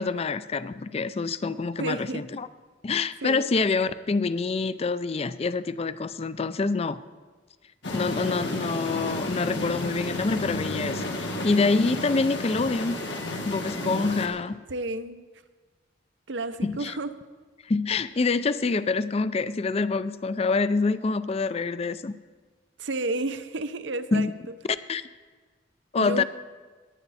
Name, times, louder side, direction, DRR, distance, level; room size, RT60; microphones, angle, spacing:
voice 1, 0.0-2.5 2.8-7.0 7.9-13.0 13.5-14.6 16.6-16.9 17.7-22.1 24.1-24.3 24.9-25.1 25.9-26.2, left 4 dB, 35° left, 15 dB, 0.4 m, -26 dB
voice 2, 1.8-2.2 3.2-3.4 13.8-14.4 14.7-15.3 16.3-17.1 22.8-24.5 25.9-26.2, right 2 dB, 80° right, 11 dB, 0.8 m, -32 dB
sound 1, 7.8-14.3, left 1 dB, 75° left, 1.9 m, -32 dB
18.0 x 10.5 x 4.2 m, 1.4 s
head